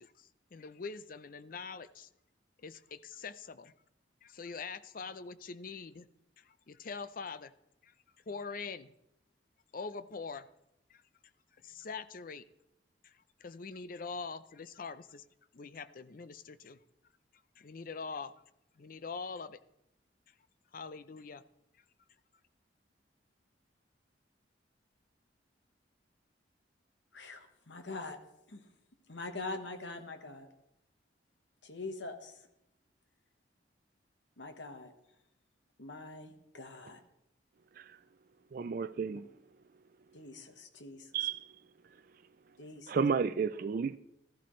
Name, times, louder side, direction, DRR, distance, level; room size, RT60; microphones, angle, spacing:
voice 1, 0.0-2.1 2.6-3.7 4.2-6.1 6.4-7.5 7.8-7.9 8.3-8.9 9.7-10.5 10.9-11.0 11.6-12.4 13.0-15.2 15.5-16.8 17.6-18.3 18.7-19.6 20.7-21.4, left 4 dB, 50° left, 0.5 m, -43 dB
voice 2, 27.1-28.2 28.5-28.6 29.1-30.5 31.6-32.4 34.4-34.9 35.8-37.0 40.1-41.3 42.6-43.0, left 3 dB, 75° left, 1.2 m, -44 dB
voice 3, 38.5-39.3 41.1-41.4 42.9-44.0, right 5 dB, 50° right, 0.4 m, -31 dB
15.0 x 14.0 x 3.2 m
head